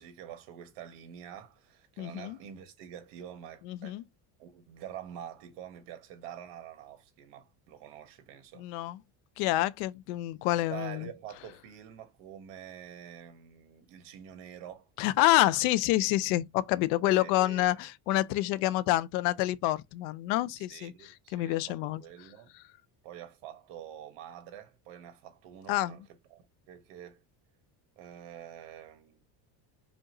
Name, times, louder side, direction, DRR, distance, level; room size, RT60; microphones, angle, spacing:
voice 1, 0.0-4.0 4.4-8.7 10.6-14.9 17.0-17.7 20.6-22.5 23.0-26.0 26.3-27.2 28.0-29.3, right 10 dB, 75° right, 1.4 m, -47 dB
voice 2, 2.0-2.4 3.6-4.0 8.6-9.0 9.4-11.1 15.0-22.0 25.7-26.0, left 15 dB, 85° left, 0.6 m, -28 dB
5.1 x 2.5 x 2.9 m
cardioid pair, 175°, 42 cm